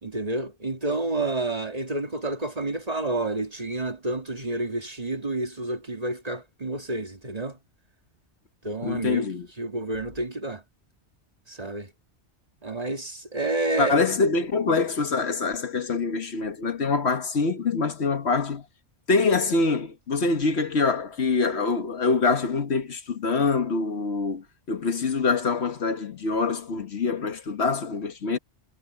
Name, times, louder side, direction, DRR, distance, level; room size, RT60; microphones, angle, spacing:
voice 1, 0.0-7.6 8.6-9.3 9.6-10.6 11.5-11.9 12.6-14.1, right 2 dB, 35° right, 2.4 m, -29 dB
voice 2, 8.8-9.5 13.8-18.6 19.1-28.4, left 4 dB, 65° left, 1.5 m, -25 dB
omnidirectional pair, 1.2 m